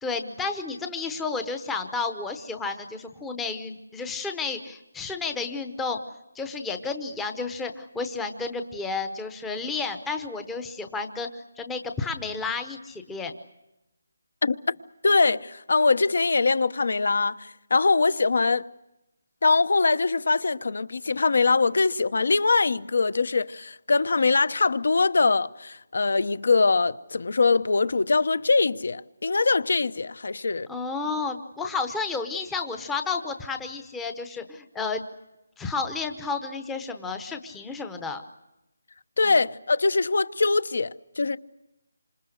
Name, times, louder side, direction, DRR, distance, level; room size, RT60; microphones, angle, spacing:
voice 1, 0.0-6.0 6.3-13.3 30.7-35.0 35.6-38.2 39.2-39.3, left 4 dB, 5° left, 0.9 m, -31 dB
voice 2, 15.0-18.7 19.4-30.7 39.2-41.4, left 4 dB, 50° left, 0.9 m, -22 dB
28.0 x 26.0 x 6.5 m
hypercardioid pair, 180°, 0 cm